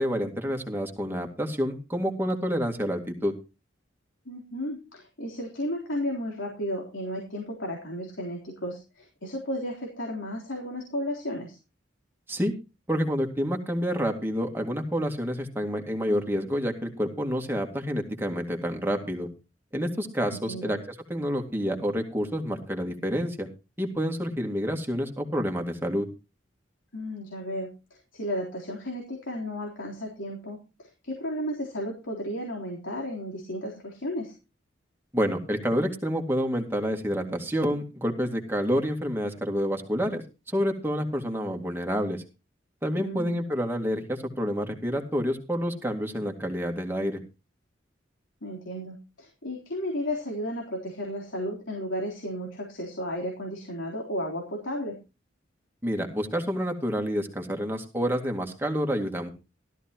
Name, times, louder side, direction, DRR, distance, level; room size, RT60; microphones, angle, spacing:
voice 1, 0.0-3.3 12.3-12.5 12.9-19.3 19.7-23.5 23.8-26.1 35.1-42.2 42.8-47.2 55.8-59.3, equal, 10° right, 3 dB, 2.2 m, -28 dB
voice 2, 4.3-11.6 20.3-20.7 26.9-27.7 28.1-34.3 43.0-43.4 48.4-55.0, equal, 90° left, -2 dB, 3.7 m, -33 dB
15.0 x 13.5 x 3.0 m, 0.29 s
head